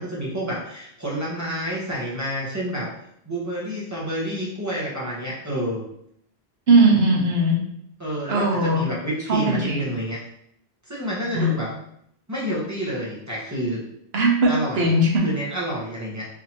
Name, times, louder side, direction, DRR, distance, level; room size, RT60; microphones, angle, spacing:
voice 1, 0.0-2.9 3.2-5.8 8.0-10.2 10.9-11.7 12.3-13.8 14.5-14.8 15.2-16.3, equal, 15° right, -6 dB, 0.9 m, -29 dB
voice 2, 6.7-7.6 8.3-8.9 9.3-9.8 11.3-11.5 14.1-15.3, right 2 dB, 70° right, -1 dB, 1.1 m, -19 dB
3.9 x 2.9 x 2.9 m, 0.71 s
omnidirectional pair, 1.1 m